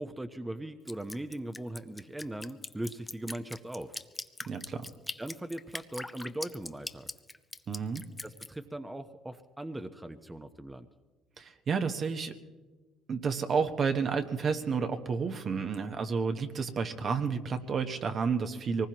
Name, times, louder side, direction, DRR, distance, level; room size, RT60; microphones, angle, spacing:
voice 1, 0.0-4.0 5.2-7.1 8.2-10.9, right 1 dB, 10° right, 7 dB, 1.0 m, -39 dB
Drip, 0.9-8.5, left 2 dB, 15° left, 0.6 m, -41 dB
voice 2, 4.5-4.9 7.7-8.0 11.4-12.3 13.1-18.9, right 5 dB, 50° right, 6 dB, 1.2 m, -31 dB
24.0 x 19.5 x 3.0 m, 1.3 s
hypercardioid pair, 60°, 0 cm